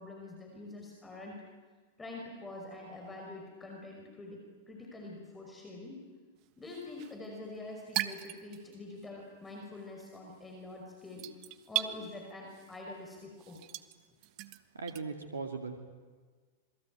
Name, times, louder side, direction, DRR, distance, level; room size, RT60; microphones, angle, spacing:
voice 1, 0.0-1.5 2.0-6.0 6.6-13.6, left 2 dB, 15° left, 0 dB, 5.5 m, -46 dB
sound 1, 6.4-9.1 9.3-15.0, right 16 dB, 50° right, 1.5 m, -39 dB
voice 2, 14.7-15.8, right 4 dB, 85° right, 5 dB, 2.1 m, -38 dB
28.0 x 21.5 x 9.3 m, 1.5 s
hypercardioid pair, 100°, 0 cm